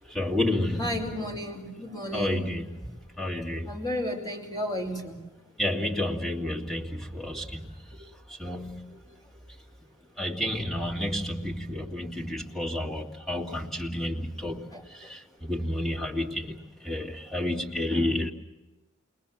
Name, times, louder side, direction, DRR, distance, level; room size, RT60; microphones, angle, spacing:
voice 1, 0.1-1.3 1.8-3.8 5.6-9.0 10.2-18.3, left 1 dB, ahead, -2 dB, 2.5 m, -31 dB
voice 2, 0.8-2.5 3.7-5.2 14.7-14.8, equal, 20° left, 0 dB, 4.7 m, -33 dB
28.5 x 21.5 x 7.2 m, 1.1 s
head